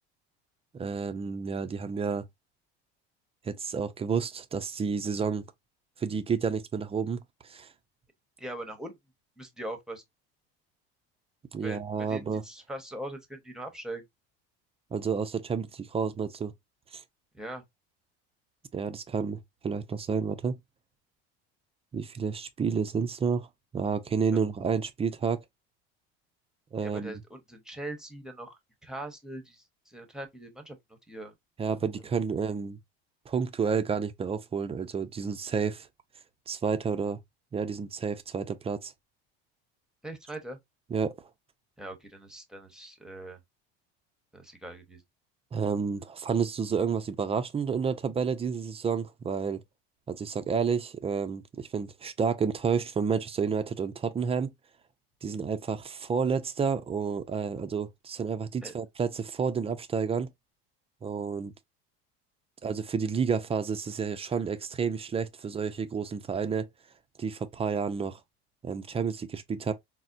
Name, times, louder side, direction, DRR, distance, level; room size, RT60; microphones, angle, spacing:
voice 1, 0.7-2.3 3.4-5.5 6.0-7.7 11.5-12.4 14.9-16.5 16.9-17.0 18.7-20.6 21.9-23.5 23.7-25.4 26.7-27.2 31.6-32.8 33.3-35.9 36.5-37.2 37.5-38.9 40.9-41.2 45.5-49.6 50.1-54.5 55.2-60.3 61.0-61.5 62.6-66.7 67.2-68.2 68.6-69.7, right 6 dB, 20° right, 0.4 m, -30 dB
voice 2, 8.4-9.0 9.4-10.0 11.6-11.8 12.1-14.1 17.3-17.6 24.3-24.4 26.8-31.3 40.0-40.6 41.8-43.4 44.3-45.0 58.6-58.7, right 1 dB, ahead, 0.8 m, -41 dB
4.1 x 2.1 x 2.4 m
supercardioid pair, 100°, 31 cm